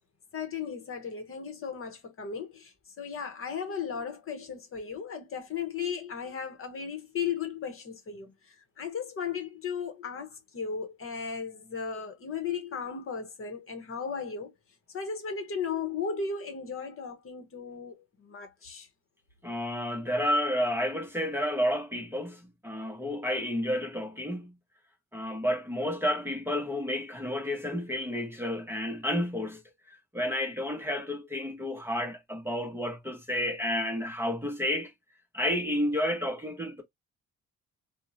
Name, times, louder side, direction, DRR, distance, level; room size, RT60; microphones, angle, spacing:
voice 1, 0.3-8.3 8.8-14.5 14.9-18.9, left 6 dB, 45° left, 0.9 m, -36 dB
voice 2, 19.4-24.6 25.1-29.6 29.9-34.9 35.3-36.8, left 1 dB, 10° right, 0.7 m, -31 dB
2.7 x 2.1 x 2.5 m
cardioid pair, 90°, 30 cm